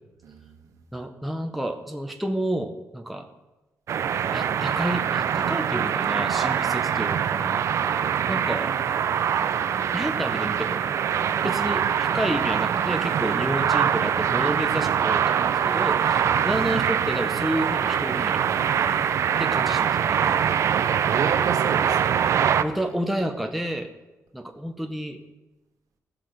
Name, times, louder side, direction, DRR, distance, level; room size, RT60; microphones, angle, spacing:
voice 1, 0.2-0.7 7.8-8.3 11.3-11.6 16.1-16.3 18.9-19.4 20.8-22.5, right 6 dB, 75° right, 4 dB, 1.2 m, -34 dB
voice 2, 0.9-3.3 4.3-7.6 8.3-8.7 9.9-11.0 11.4-19.1 19.4-20.4 22.6-23.9 24.3-25.2, right 1 dB, ahead, 4 dB, 0.6 m, -30 dB
sound 1, 3.9-22.6, right 8 dB, 60° right, 0.4 m, -23 dB
15.5 x 6.0 x 5.0 m, 1.0 s
wide cardioid pair, 180°, 6 cm